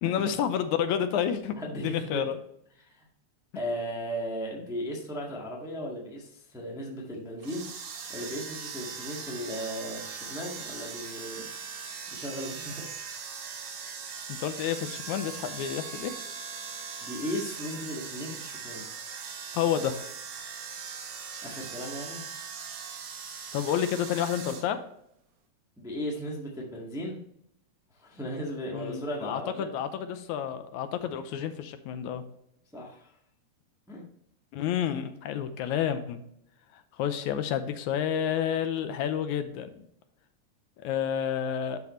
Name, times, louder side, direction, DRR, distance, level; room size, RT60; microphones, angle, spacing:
voice 1, 0.0-1.6 1.8-2.4 14.3-16.2 19.5-20.0 23.5-24.8 28.7-32.2 34.5-36.2 36.7-39.9 40.8-41.8, left 9 dB, 85° left, 9 dB, 2.0 m, -30 dB
voice 2, 1.6-2.2 2.8-3.1 3.5-11.4 12.1-13.3 17.0-18.9 21.4-22.2 25.8-27.2 28.0-29.7 32.7-33.1 33.9-34.0, equal, ahead, -2 dB, 0.8 m, -36 dB
sound 1, 7.4-24.6, right 6 dB, 70° right, 2.5 m, -40 dB
11.5 x 4.8 x 3.1 m, 0.72 s
omnidirectional pair, 3.4 m